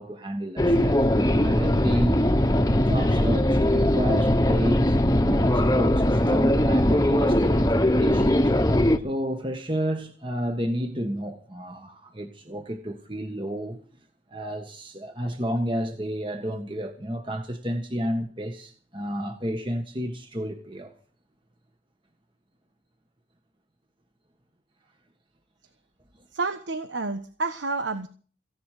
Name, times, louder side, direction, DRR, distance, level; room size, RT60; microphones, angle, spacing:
voice 1, 0.0-2.2 2.7-8.5 9.0-13.8 14.3-20.9, equal, 25° right, 1.5 m, -31 dB
sound 1, 0.6-9.0, left 1 dB, 20° left, 1.2 m, -21 dB
voice 2, 26.3-28.1, right 3 dB, 90° right, 1.3 m, -29 dB
18.5 x 16.0 x 5.0 m
head